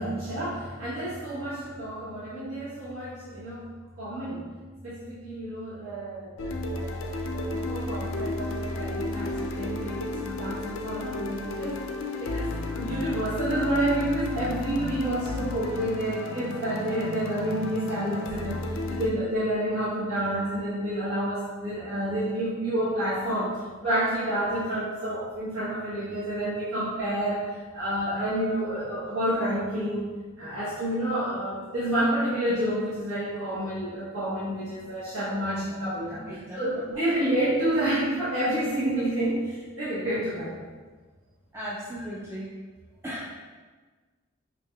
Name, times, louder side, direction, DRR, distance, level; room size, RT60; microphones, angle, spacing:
voice 1, 0.0-3.7 4.0-4.5 4.8-11.8 12.2-40.5, right 1 dB, 85° right, -12 dB, 1.0 m, -29 dB
sound 1, 6.4-19.1, left 2 dB, 75° left, 0.4 m, -33 dB
voice 2, 36.1-36.6 41.5-42.5 43.0-43.3, equal, 10° right, -7 dB, 0.3 m, -36 dB
4.7 x 2.8 x 2.3 m, 1.4 s
head